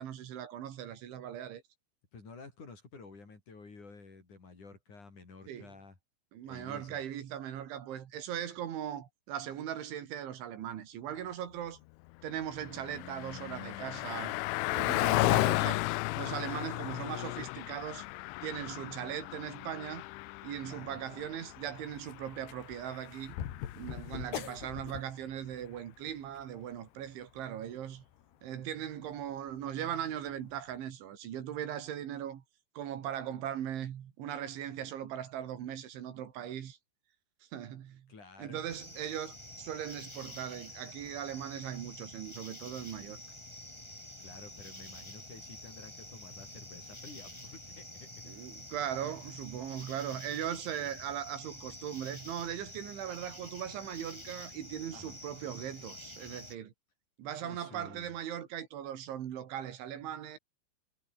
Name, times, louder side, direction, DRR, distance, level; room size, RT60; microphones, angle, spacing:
voice 1, 0.0-1.6 5.5-5.7 6.3-11.8 12.2-14.4 14.7-15.9 16.2-18.1 18.4-20.0 20.4-23.4 23.7-28.0 28.4-32.4 32.8-36.8 37.5-38.1 38.4-43.2 48.3-56.7 57.2-60.4, right 10 dB, 80° right, 4.8 m, -39 dB
voice 2, 2.1-6.0 6.5-7.0 11.1-11.3 20.6-21.0 24.1-24.4 38.1-38.6 44.2-48.3 49.0-49.1 49.6-49.8 54.9-55.2 57.3-58.1, left 4 dB, 40° left, 6.9 m, -52 dB
Car passing by, 12.1-23.9, left 23 dB, 85° left, 3.0 m, -34 dB
sound 1, 16.9-30.8, left 10 dB, 65° left, 4.1 m, -49 dB
sound 2, 38.7-56.5, left 1 dB, 5° left, 4.4 m, -48 dB
omnidirectional pair, 5.4 m